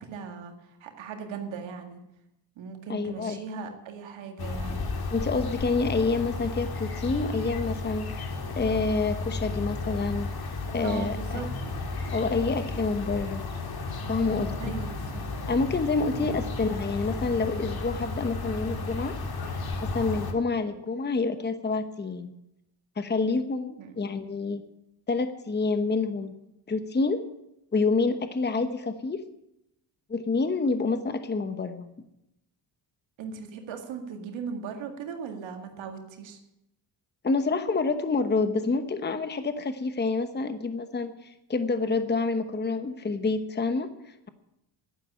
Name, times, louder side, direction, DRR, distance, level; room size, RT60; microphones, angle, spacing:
voice 1, 0.1-2.0 2.6-4.9 10.8-11.8 14.6-15.2 16.2-16.3 23.8-24.0 33.2-36.4, right 6 dB, 90° right, 4 dB, 2.1 m, -38 dB
voice 2, 2.9-3.4 5.1-10.3 10.7-11.4 12.1-13.4 14.1-14.6 15.5-19.2 19.8-22.3 23.0-24.6 25.1-26.3 26.7-27.2 27.7-29.3 30.1-31.9 37.2-43.9, left 3 dB, 25° left, 9 dB, 1.0 m, -28 dB
sound 1, 4.4-20.3, left 3 dB, 55° left, 2.2 m, -33 dB
11.0 x 9.9 x 8.6 m, 0.86 s
cardioid pair, 90°, 45 cm